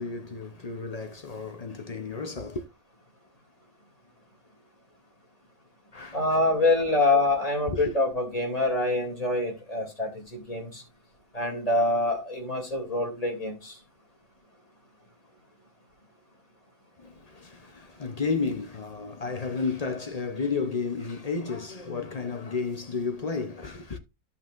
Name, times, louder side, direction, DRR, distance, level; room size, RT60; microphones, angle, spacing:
voice 1, 0.0-2.7 5.9-6.2 7.7-7.9 17.0-24.0, left 4 dB, 40° left, 0.6 m, -32 dB
voice 2, 6.1-10.8 11.3-13.8, left 2 dB, 25° left, 2.9 m, -26 dB
13.5 x 5.6 x 2.5 m
omnidirectional pair, 1.6 m